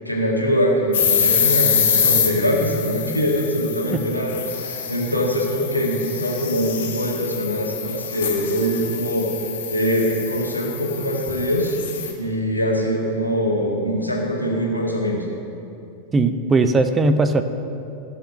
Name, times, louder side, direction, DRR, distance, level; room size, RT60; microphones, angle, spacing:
voice 1, 0.0-11.8 12.2-15.2, equal, 90° left, -3 dB, 2.0 m, -23 dB
sound 1, 0.9-12.1, left 7 dB, 60° left, 2.1 m, -25 dB
voice 2, 16.1-17.4, right 3 dB, 20° right, 9 dB, 0.6 m, -18 dB
16.0 x 5.8 x 6.7 m, 2.8 s
figure-of-eight pair, 90°, 0 cm